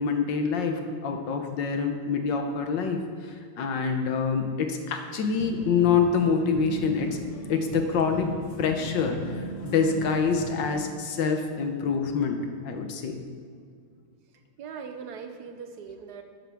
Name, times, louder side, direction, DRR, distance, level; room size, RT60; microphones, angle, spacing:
voice 1, 0.0-7.2 7.5-8.3 8.6-13.2, left 5 dB, 65° left, 5 dB, 1.5 m, -26 dB
sound 1, 5.3-10.7, equal, 85° left, 2.4 m, -38 dB
voice 2, 14.6-16.2, right 6 dB, 60° right, 6 dB, 1.1 m, -40 dB
12.5 x 9.8 x 3.5 m, 2.2 s
omnidirectional pair, 2.4 m